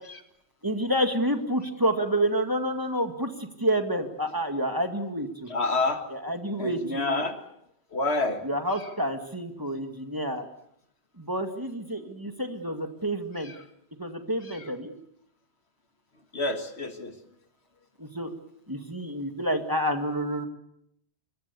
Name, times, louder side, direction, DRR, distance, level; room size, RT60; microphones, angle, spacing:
voice 1, 0.6-5.5 6.2-7.3 8.4-10.5 11.2-13.5 14.0-14.9 18.0-18.3 18.7-20.5, right 1 dB, 20° right, 5 dB, 2.0 m, -29 dB
voice 2, 5.5-6.0 6.6-7.4 7.9-8.4 8.7-8.9 13.4-13.6 14.4-14.7 16.3-17.2, left 2 dB, 65° left, 7 dB, 2.2 m, -29 dB
26.0 x 22.0 x 7.0 m, 0.76 s
omnidirectional pair, 1.2 m